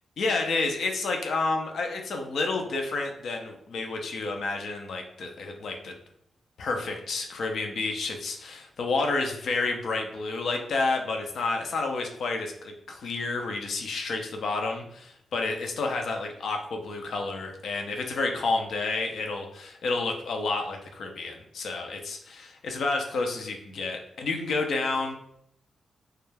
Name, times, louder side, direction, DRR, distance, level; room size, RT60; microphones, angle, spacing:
voice 1, 0.2-5.9 6.6-25.1, left 3 dB, 75° left, 3 dB, 0.4 m, -30 dB
2.3 x 2.1 x 3.2 m, 0.71 s
supercardioid pair, 50°, 0 cm